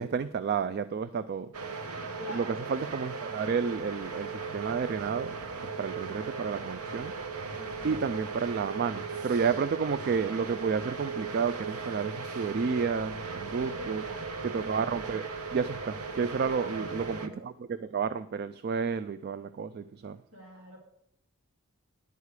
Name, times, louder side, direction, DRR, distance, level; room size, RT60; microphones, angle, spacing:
voice 1, 0.0-1.5 2.3-5.4 5.6-7.1 7.8-14.0 14.4-20.2, right 6 dB, 45° right, 13 dB, 0.3 m, -31 dB
sound 1, 1.5-17.3, right 4 dB, 90° right, 0.9 m, -37 dB
voice 2, 2.2-2.6 7.5-8.0 13.6-14.3 16.3-17.3 20.3-20.8, equal, 65° right, -5 dB, 3.3 m, -45 dB
11.0 x 4.8 x 8.2 m, 0.76 s
head